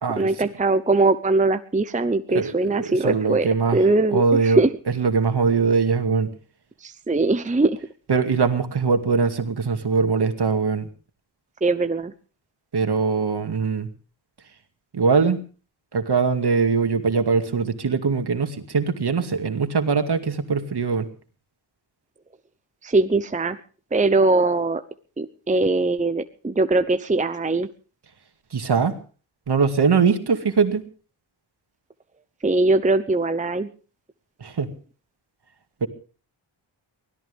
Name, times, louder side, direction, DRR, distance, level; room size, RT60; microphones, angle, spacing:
voice 1, 0.2-4.7 6.8-7.8 11.6-12.1 22.8-23.6 23.9-24.8 25.2-27.7 32.4-33.7, right 2 dB, 15° right, 10 dB, 0.8 m, -21 dB
voice 2, 2.3-3.8 4.1-4.6 5.0-6.3 8.1-10.9 12.7-13.9 14.9-15.4 15.9-21.1 28.5-28.9 29.5-30.8 34.4-34.7 35.8-35.9, right 5 dB, 55° right, 7 dB, 2.3 m, -21 dB
24.0 x 17.0 x 3.5 m, 0.37 s
wide cardioid pair, 115°, 47 cm